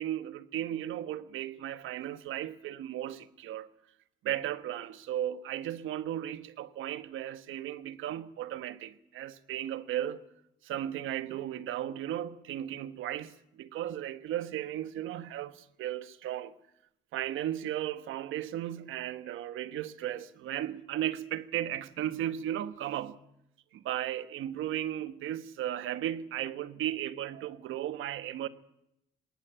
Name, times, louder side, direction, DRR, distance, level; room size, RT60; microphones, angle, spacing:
voice 1, 0.0-3.7 4.2-10.2 10.6-16.5 17.1-23.2 23.7-28.5, right 12 dB, 85° right, 1.3 m, -35 dB
19.5 x 19.0 x 8.9 m
cardioid pair, 90°, 20 cm